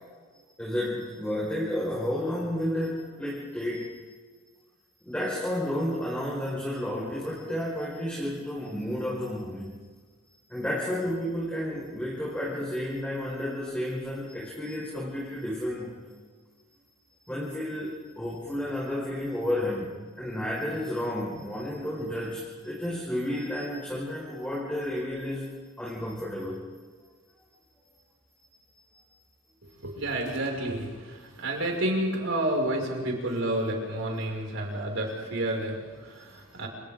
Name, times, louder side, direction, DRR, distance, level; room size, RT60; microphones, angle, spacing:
voice 1, 0.6-4.0 5.1-9.8 10.5-16.1 17.2-25.5 25.8-26.6 28.7-28.8, left 1 dB, 5° left, -6 dB, 5.2 m, -31 dB
voice 2, 29.8-36.7, right 1 dB, 90° right, -1 dB, 6.3 m, -30 dB
29.5 x 29.0 x 3.9 m, 1.5 s
head